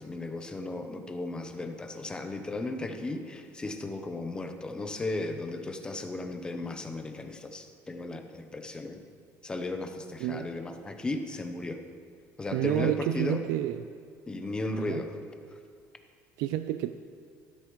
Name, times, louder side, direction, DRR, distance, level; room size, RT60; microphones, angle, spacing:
voice 1, 0.0-9.0 9.4-11.8 12.4-13.5 14.3-15.2, left 2 dB, 15° left, 6 dB, 0.8 m, -35 dB
voice 2, 12.5-13.8 14.9-15.0 16.4-16.9, right 13 dB, 80° right, 10 dB, 0.4 m, -29 dB
14.0 x 12.5 x 3.1 m, 2.2 s
cardioid pair, 155°, 6 cm